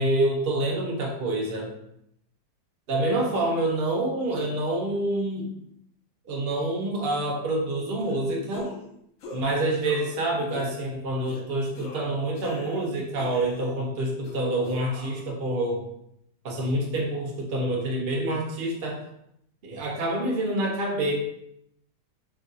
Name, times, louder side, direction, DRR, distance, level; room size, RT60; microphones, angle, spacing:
voice 1, 0.0-1.7 2.9-5.5 6.3-8.7 9.3-15.8 16.4-19.0 19.6-21.1, right 1 dB, 70° right, -1 dB, 0.5 m, -27 dB
sound 1, 8.0-8.2 8.5-8.9 9.2-9.5 9.8-10.2 10.5-10.8 11.3-11.4 11.7-12.9 13.2-13.8 14.2-15.2, left 2 dB, 65° left, 1.0 m, -41 dB
3.9 x 2.6 x 2.6 m, 0.77 s
omnidirectional pair, 1.8 m